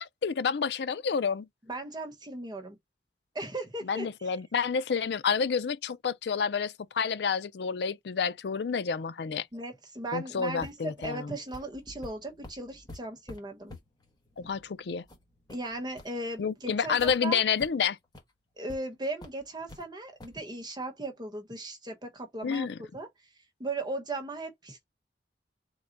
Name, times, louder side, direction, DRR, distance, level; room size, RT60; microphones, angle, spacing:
voice 1, 0.0-1.5 3.9-9.5 10.1-11.4 14.4-15.0 16.4-18.0 22.4-22.7, left 6 dB, 75° left, 0.4 m, -29 dB
voice 2, 1.7-2.8 3.3-4.4 9.5-13.8 15.5-17.4 18.6-23.1 23.6-24.8, right 2 dB, 25° right, 1.0 m, -37 dB
sound 1, 10.6-17.2 17.6-17.7 18.0-18.2 18.7-18.8 19.2-19.8 20.2-20.4, left 1 dB, 25° left, 1.3 m, -49 dB
3.8 x 2.2 x 4.4 m
head